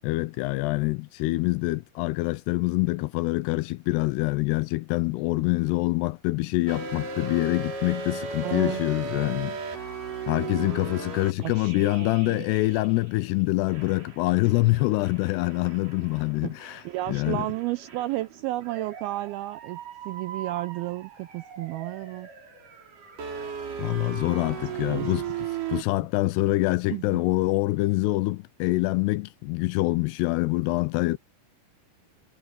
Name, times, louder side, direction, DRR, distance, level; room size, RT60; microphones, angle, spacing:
voice 1, 0.0-9.6 10.3-16.8 17.1-17.5 23.8-25.3 25.7-31.2, left 20 dB, 80° left, 2.6 m, -25 dB
sound 1, 6.7-13.2 13.7-25.8, right 6 dB, 50° right, 5.4 m, -37 dB
voice 2, 8.4-8.8 11.4-12.5 16.4-16.5 16.8-19.8 20.1-22.3 24.3-25.1 26.9-27.2, right 17 dB, 85° right, 2.2 m, -33 dB
omnidirectional pair, 4.9 m